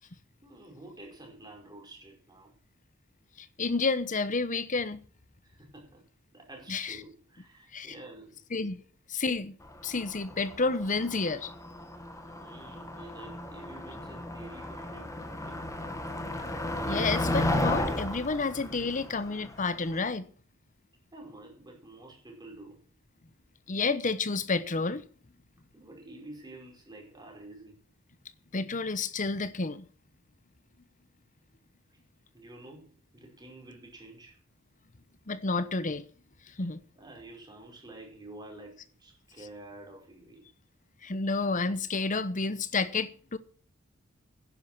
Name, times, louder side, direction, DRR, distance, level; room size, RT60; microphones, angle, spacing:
voice 1, 0.0-2.5 5.4-6.0 6.3-8.4 12.4-15.7 21.1-22.8 25.7-27.8 32.3-34.4 36.9-40.5, right 2 dB, 20° right, 5.1 m, -49 dB
voice 2, 3.4-5.0 6.7-7.0 7.7-7.9 8.5-8.8 9.1-9.6 9.8-11.5 16.9-20.3 23.7-25.0 28.5-29.9 35.3-36.0 36.6-36.8 41.0-43.4, left 3 dB, 35° left, 0.9 m, -30 dB
Motor vehicle (road), 9.7-20.0, left 1 dB, 15° left, 1.8 m, -34 dB
10.5 x 10.5 x 6.0 m
head